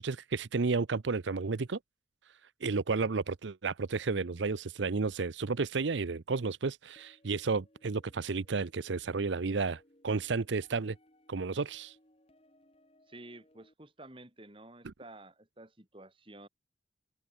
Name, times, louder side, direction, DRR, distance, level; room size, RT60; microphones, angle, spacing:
voice 1, 0.0-1.8 2.6-11.0 11.3-12.0 14.8-14.9, right 4 dB, 75° right, 0.7 m, -32 dB
sound 1, 7.0-13.7, left 1 dB, 30° left, 4.9 m, -65 dB
voice 2, 13.1-16.5, right 2 dB, 30° right, 3.1 m, -51 dB
head